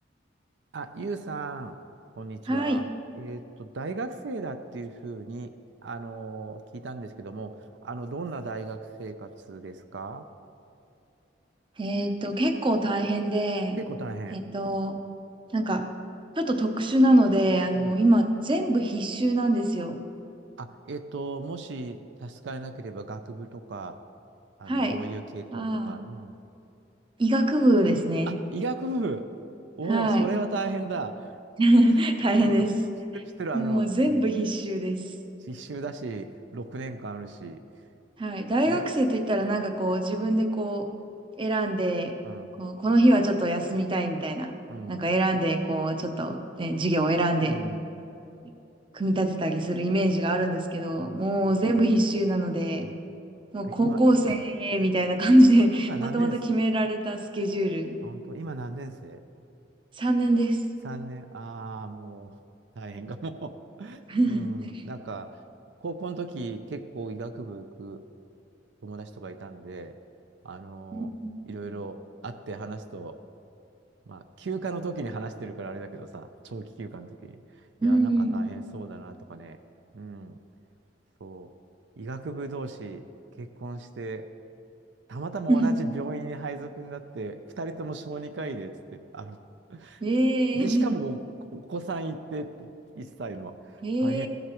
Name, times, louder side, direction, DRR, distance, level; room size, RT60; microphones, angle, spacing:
voice 1, 0.7-1.8 2.2-2.9 3.2-5.5 5.8-7.6 7.8-10.2 13.8-14.4 17.7-17.9 20.6-24.0 24.6-26.4 28.3-29.2 29.7-31.3 32.4-32.6 33.4-33.8 34.1-34.4 35.4-37.6 38.7-38.8 42.2-42.5 44.7-45.1 47.4-47.9 51.0-51.2 52.8-53.0 53.6-54.0 55.9-56.4 58.0-59.2 60.8-62.4 62.8-63.5 63.8-65.3 65.8-68.0 68.8-70.0 70.4-71.1 71.5-72.0 72.2-73.2 74.1-79.6 79.9-80.4 81.2-81.5 82.0-83.0 83.4-84.3 85.1-89.4 89.7-90.0 90.5-91.2 91.5-92.7 92.9-94.3, right 3 dB, 75° right, 8 dB, 0.5 m, -36 dB
voice 2, 2.5-2.8 11.8-13.8 14.3-15.0 15.5-15.9 16.4-20.0 24.7-25.0 25.5-26.0 27.2-28.4 29.9-30.3 31.6-32.7 33.5-35.0 38.2-40.9 41.4-42.2 42.6-44.5 44.9-47.6 48.9-52.9 53.5-58.0 60.0-60.6 64.1-64.5 70.9-71.4 77.8-78.4 85.5-85.8 90.0-90.9 93.8-94.3, right 1 dB, 30° right, 6 dB, 0.6 m, -24 dB
15.0 x 7.9 x 3.0 m, 2.7 s
head